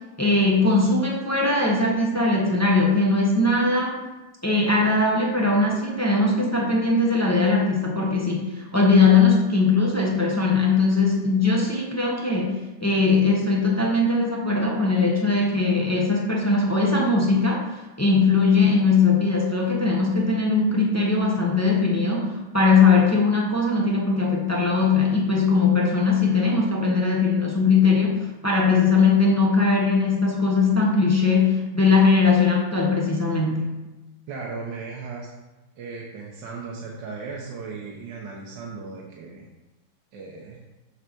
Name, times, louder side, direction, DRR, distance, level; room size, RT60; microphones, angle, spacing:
voice 1, 0.2-4.0 4.4-17.7 18.0-33.7, left 4 dB, 15° left, -2 dB, 0.5 m, -20 dB
voice 2, 34.3-35.3 35.8-39.5 40.1-40.6, right 4 dB, 70° right, -2 dB, 1.5 m, -36 dB
6.7 x 4.0 x 6.1 m, 1.1 s
omnidirectional pair, 2.2 m